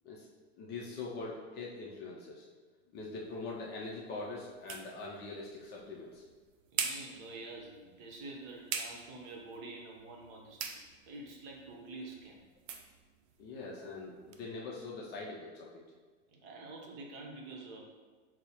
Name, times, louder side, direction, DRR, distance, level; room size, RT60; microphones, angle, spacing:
voice 1, 0.6-2.5 2.9-6.2 13.4-15.7, left 3 dB, 25° left, -3 dB, 0.4 m, -43 dB
sound 1, 2.9-14.5, right 6 dB, 75° right, 0.6 m, -45 dB
voice 2, 6.7-12.5 16.3-17.8, right 2 dB, 50° right, 0 dB, 0.9 m, -47 dB
5.9 x 2.0 x 2.9 m, 1.4 s
hypercardioid pair, 120°, 39 cm